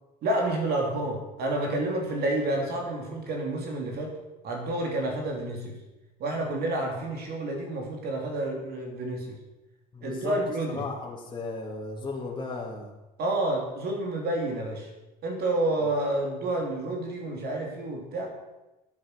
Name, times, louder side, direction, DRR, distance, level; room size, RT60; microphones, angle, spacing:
voice 1, 0.2-4.1 4.4-5.8 6.2-9.4 10.0-10.8 13.2-14.9 15.2-18.3, right 1 dB, 70° right, 1 dB, 3.1 m, -29 dB
voice 2, 9.9-10.4 10.7-12.9, left 3 dB, 25° left, -4 dB, 2.5 m, -35 dB
13.0 x 8.7 x 6.7 m, 1.0 s
cardioid pair, 110°, 17 cm